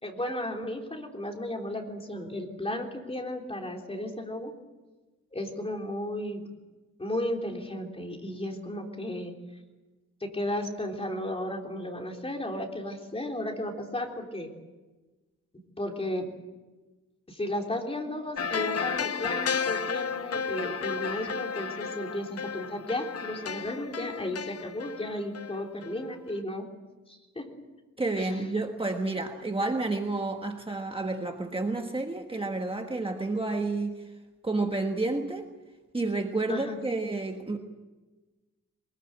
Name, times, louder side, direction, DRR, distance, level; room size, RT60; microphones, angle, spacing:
voice 1, 0.0-4.5 5.3-6.5 7.0-9.3 10.2-14.5 15.8-16.3 17.3-26.7 27.1-27.5 28.2-28.4 36.5-36.8, left 1 dB, 20° left, 1 dB, 3.6 m, -34 dB
sound 1, 18.4-26.0 26.3-26.4, left 6 dB, 55° left, 0.8 m, -33 dB
voice 2, 28.0-34.1 34.4-35.5 35.9-37.6, right 2 dB, 20° right, 4 dB, 1.4 m, -30 dB
23.0 x 21.0 x 8.9 m, 1.2 s
wide cardioid pair, 155°, 29 cm